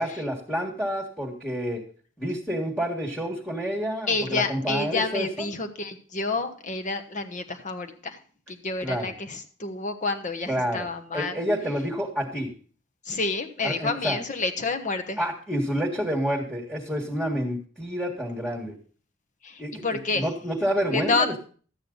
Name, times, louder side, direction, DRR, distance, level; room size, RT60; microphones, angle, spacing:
voice 1, 0.0-1.8 2.2-5.3 8.8-9.1 10.5-10.9 11.1-12.5 13.6-14.2 15.2-18.8 19.6-19.8 20.1-21.3, equal, ahead, -5 dB, 1.8 m, -28 dB
voice 2, 4.1-8.2 8.5-11.4 13.0-15.2 19.4-20.3 20.9-21.4, left 3 dB, 40° left, 7 dB, 1.2 m, -29 dB
13.0 x 8.9 x 3.9 m, 0.42 s
head